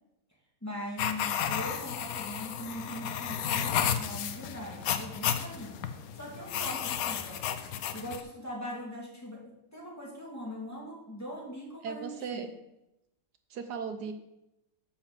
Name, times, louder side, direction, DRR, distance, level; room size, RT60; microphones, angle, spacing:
voice 1, 0.6-5.8 6.1-7.4 7.9-12.5, equal, 10° left, -4 dB, 2.3 m, -41 dB
sound 1, 1.0-8.2, left 9 dB, 70° left, 1.1 m, -33 dB
voice 2, 11.8-12.5 13.5-14.1, right 6 dB, 80° right, 8 dB, 1.4 m, -37 dB
9.7 x 4.3 x 7.3 m, 0.89 s
omnidirectional pair, 1.7 m